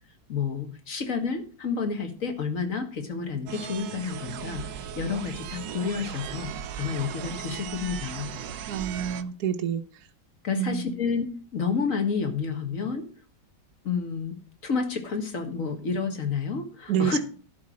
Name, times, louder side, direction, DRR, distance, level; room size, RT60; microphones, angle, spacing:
voice 1, 0.3-4.6 4.9-6.5 6.8-8.3 10.4-11.3 11.5-13.1 13.8-14.4 14.6-17.2, left 5 dB, 50° left, 6 dB, 2.0 m, -30 dB
sound 1, 3.5-9.2, right 9 dB, 85° right, 1.5 m, -37 dB
voice 2, 8.7-9.8 10.5-10.9 16.9-17.2, right 9 dB, 65° right, 6 dB, 1.2 m, -27 dB
11.5 x 4.8 x 7.6 m, 0.39 s
omnidirectional pair, 1.9 m